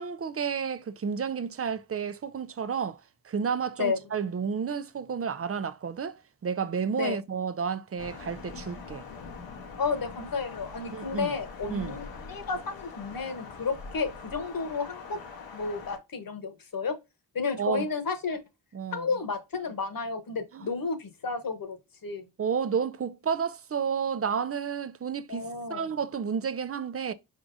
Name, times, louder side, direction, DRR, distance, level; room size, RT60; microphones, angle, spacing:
voice 1, 0.0-3.0 3.2-6.2 6.4-9.0 10.9-11.3 11.7-12.0 17.6-17.9 18.7-19.1 20.5-20.7 22.4-27.1, right 6 dB, 30° right, 0.6 m, -31 dB
Thunder, 8.0-16.0, left 4 dB, 85° left, 1.2 m, -43 dB
voice 2, 9.8-15.2 15.5-17.0 17.3-18.4 18.9-21.8 22.0-22.3 25.3-25.8, left 4 dB, 50° left, 1.2 m, -32 dB
4.8 x 3.7 x 2.6 m
supercardioid pair, 45°, 44 cm